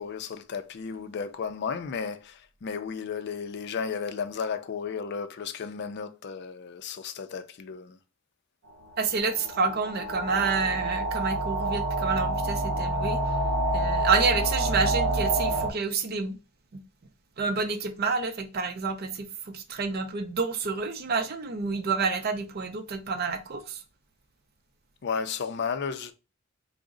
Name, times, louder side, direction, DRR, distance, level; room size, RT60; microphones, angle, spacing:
voice 1, 0.0-8.0 25.0-26.1, left 6 dB, 55° left, 0.4 m, -33 dB
voice 2, 9.0-13.2 13.7-16.4 17.4-19.3 19.5-23.8, right 4 dB, 50° right, 0.5 m, -28 dB
sound 1, 9.0-15.7, right 1 dB, 90° right, 0.7 m, -28 dB
3.6 x 2.0 x 3.7 m
head